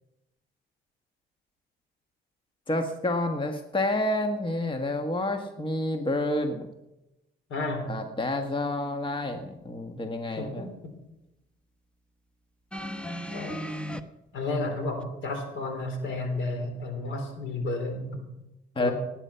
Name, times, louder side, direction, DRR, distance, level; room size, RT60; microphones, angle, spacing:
voice 1, 2.7-6.7 7.9-10.7 18.7-18.9, left 1 dB, 25° left, 5 dB, 1.5 m, -29 dB
voice 2, 7.5-8.0 10.4-10.7 13.3-13.6 14.3-18.2 18.8-18.9, left 2 dB, 70° left, 6 dB, 3.8 m, -32 dB
sound 1, 12.7-14.0 15.0-15.1, equal, 5° left, 1.0 m, -35 dB
18.5 x 9.2 x 5.7 m, 0.94 s
cardioid pair, 90°, 20 cm